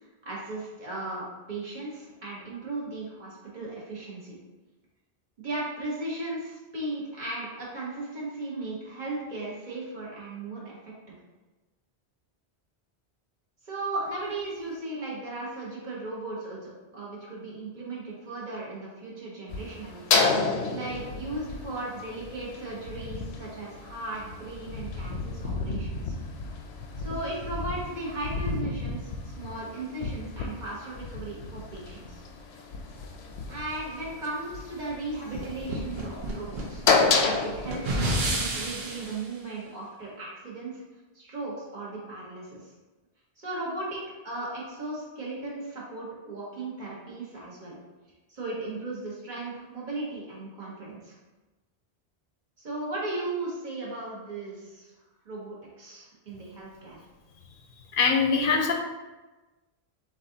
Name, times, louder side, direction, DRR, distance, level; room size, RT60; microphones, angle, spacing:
voice 1, 0.2-4.3 5.4-10.7 11.1-11.2 13.6-26.2 27.0-32.2 33.5-36.8 37.2-40.7 41.1-42.6 43.4-47.8 48.3-51.1 52.6-54.9 55.2-57.0, right 2 dB, 45° right, -6 dB, 1.4 m, -36 dB
sound 1, 19.5-39.2, left 4 dB, 85° left, 0.8 m, -31 dB
sound 2, 35.3-39.2, right 1 dB, 70° right, 1.0 m, -31 dB
voice 2, 58.0-58.7, left 5 dB, 60° left, 3 dB, 0.7 m, -22 dB
7.1 x 2.6 x 2.7 m, 1.2 s
omnidirectional pair, 1.1 m